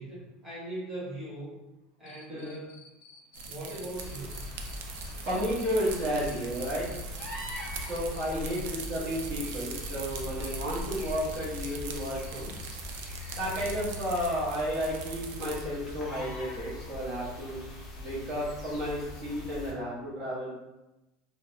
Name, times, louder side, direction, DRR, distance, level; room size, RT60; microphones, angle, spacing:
voice 1, 0.0-1.6 2.0-2.9 3.5-4.4, right 1 dB, 10° right, -10 dB, 0.9 m, -40 dB
Cricket, 2.1-14.0, left 5 dB, 75° left, 0.4 m, -54 dB
sound 1, 3.3-15.6, right 5 dB, 75° right, 0.3 m, -42 dB
sound 2, 3.9-19.7, left 2 dB, 20° left, 0.5 m, -42 dB
voice 2, 5.2-6.9 7.8-12.5 13.4-17.5 18.0-20.6, equal, 40° right, -8 dB, 0.8 m, -32 dB
2.3 x 2.1 x 2.9 m, 0.97 s
cardioid pair, 180°, 0 cm